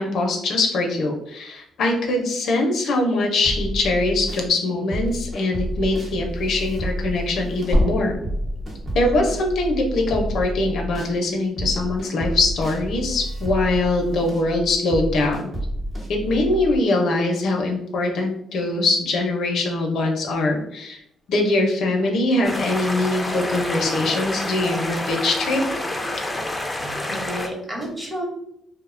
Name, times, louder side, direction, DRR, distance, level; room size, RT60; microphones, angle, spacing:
voice 1, 0.0-8.2 8.9-15.5 16.1-21.0 21.3-25.6, left 2 dB, 70° left, 2 dB, 0.5 m, -22 dB
sound 1, 3.4-4.5 4.9-11.2 11.6-16.8, equal, 45° right, 0.8 m, -30 dB
sound 2, 7.7-11.9 12.2-12.3 13.7-13.8, equal, 75° right, 1.0 m, -28 dB
sound 3, 22.4-27.5, left 1 dB, 10° left, 0.4 m, -28 dB
voice 2, 26.8-28.3, equal, 20° right, -1 dB, 0.8 m, -31 dB
2.6 x 2.0 x 2.4 m, 0.75 s
cardioid pair, 90°, 0 cm